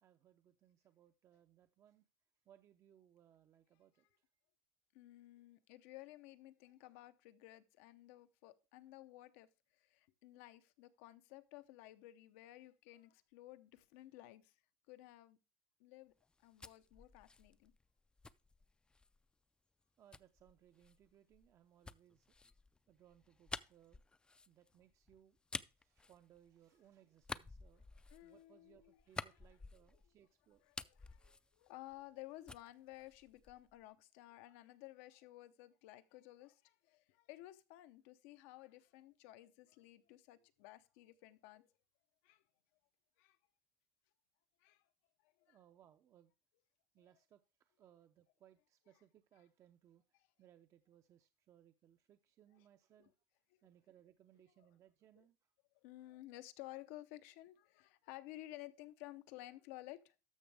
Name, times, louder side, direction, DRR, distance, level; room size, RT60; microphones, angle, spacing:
voice 1, 0.0-2.1 2.5-4.2 20.0-22.3 22.9-24.0 24.5-25.4 25.8-27.9 28.2-30.6 31.2-31.5 45.5-46.3 46.9-53.1 53.6-55.5 56.0-56.1, right 11 dB, 40° right, 0.6 m, -67 dB
voice 2, 4.9-9.5 9.8-14.5 14.9-15.4 15.8-16.1 16.4-17.7 28.1-29.0 29.3-29.4 30.7-41.7 42.2-42.4 43.2-43.4 44.6-44.8 45.4-45.6 52.5-52.6 55.8-60.2, left 16 dB, 85° left, 0.8 m, -55 dB
sound 1, 16.2-19.2 20.1-26.8 27.2-30.2 30.5-32.2 32.5-33.8, left 3 dB, 10° left, 0.4 m, -51 dB
13.0 x 6.1 x 3.4 m
cardioid pair, 125°, 7 cm